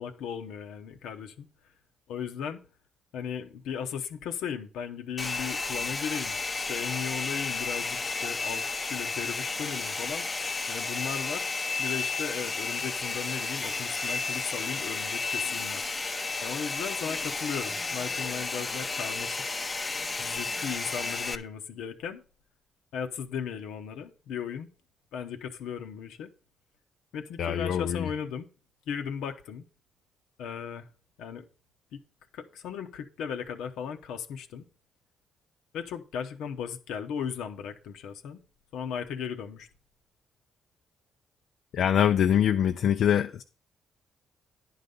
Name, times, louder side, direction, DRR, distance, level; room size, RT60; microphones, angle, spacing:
voice 1, 0.0-1.5 2.1-2.6 3.1-6.4 6.7-10.3 10.7-11.5 11.8-15.9 16.4-19.4 20.2-22.2 22.9-24.7 25.1-26.3 27.1-28.5 28.9-29.7 30.4-30.9 31.2-31.5 31.9-32.0 32.3-34.7 35.7-38.4 38.7-39.7, left 7 dB, 85° left, 0.9 m, -36 dB
Domestic sounds home sounds, 5.2-21.4, left 3 dB, 30° left, 0.7 m, -32 dB
voice 2, 27.4-28.1 41.7-43.4, left 9 dB, 70° left, 0.5 m, -24 dB
10.5 x 4.0 x 6.7 m
cardioid pair, 80°, 0 cm